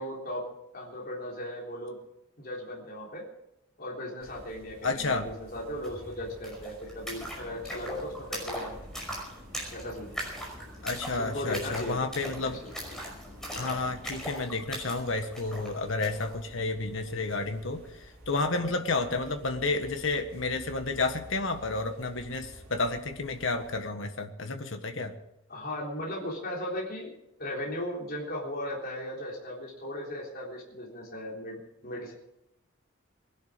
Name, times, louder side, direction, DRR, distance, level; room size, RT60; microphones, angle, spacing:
voice 1, 0.0-2.0 2.4-3.2 3.8-8.8 9.7-10.2 11.1-12.1 12.4-12.7 18.5-18.7 25.5-27.1 27.4-32.1, left 1 dB, 45° left, -3 dB, 3.7 m, -37 dB
sound 1, 4.2-23.7, right 1 dB, 45° right, 4.8 m, -51 dB
voice 2, 4.8-5.3 10.8-12.6 13.5-25.2, left 3 dB, 65° left, 5 dB, 1.4 m, -31 dB
sound 2, 5.8-5.9 6.1-16.3, equal, 5° left, 5.4 m, -40 dB
21.0 x 11.5 x 5.1 m, 0.84 s
head